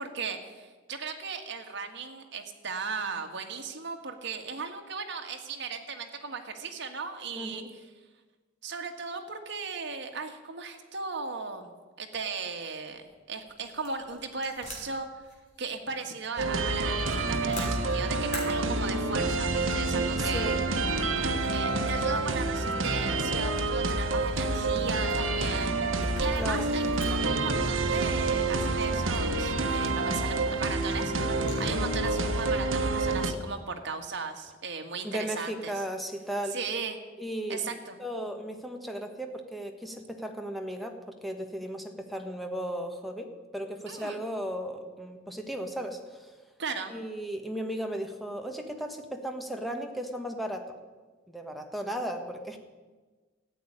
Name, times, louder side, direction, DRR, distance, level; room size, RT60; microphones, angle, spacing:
voice 1, 0.0-7.6 8.6-11.7 12.0-15.1 15.6-20.7 21.5-31.1 31.6-35.8 36.5-37.0 37.5-38.0 43.9-44.2 46.6-46.9, right 4 dB, 60° right, 5 dB, 1.7 m, -37 dB
voice 2, 7.3-7.7 20.2-20.6 26.4-26.7 31.7-32.0 35.0-36.6 37.2-37.6 38.0-46.3 46.9-50.7 51.3-52.6, equal, ahead, 4 dB, 1.4 m, -36 dB
sound 1, 13.0-32.4, left 1 dB, 40° left, 4.2 m, -48 dB
sound 2, 16.4-33.3, right 2 dB, 80° right, 1.2 m, -28 dB
14.0 x 8.7 x 9.8 m, 1.3 s
head